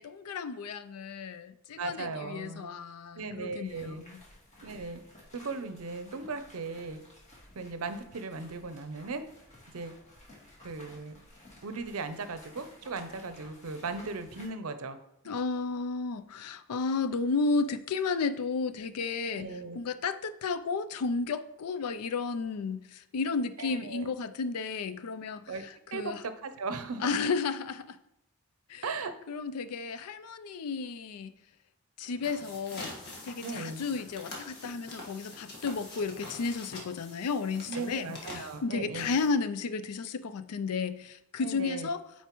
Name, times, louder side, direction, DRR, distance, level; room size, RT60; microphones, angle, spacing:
voice 1, 0.0-4.2 15.3-19.5 19.7-25.4 25.9-26.2 27.0-28.0 28.7-28.8 29.3-31.3 32.0-32.9 33.2-42.0, left 4 dB, 85° left, 0.4 m, -33 dB
voice 2, 1.8-2.7 3.1-4.0 4.6-5.0 5.3-7.0 7.6-9.2 9.7-9.9 10.6-11.1 11.6-15.0 15.2-15.3 19.3-19.8 23.6-24.1 25.5-25.6 25.9-27.3 28.8-29.1 33.4-33.8 37.7-39.1 41.4-41.9, right 4 dB, 70° right, 0.6 m, -37 dB
sound 1, 3.6-14.5, left 1 dB, 30° left, 1.7 m, -55 dB
sound 2, 32.1-39.6, left 2 dB, 50° left, 1.6 m, -45 dB
9.0 x 4.3 x 3.0 m
head